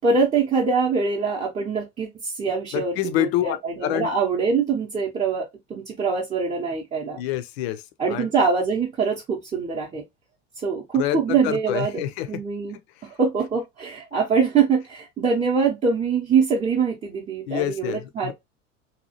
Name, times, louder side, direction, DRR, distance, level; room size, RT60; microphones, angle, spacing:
voice 1, 0.0-7.2 8.0-10.0 10.6-12.0 12.3-12.8 13.2-18.3, right 5 dB, 20° right, 0.7 m, -23 dB
voice 2, 2.7-4.1 7.2-7.8 8.1-8.3 10.9-12.4 17.5-18.3, left 13 dB, 55° left, 0.5 m, -27 dB
2.7 x 2.3 x 2.7 m
figure-of-eight pair, 80°, 37 cm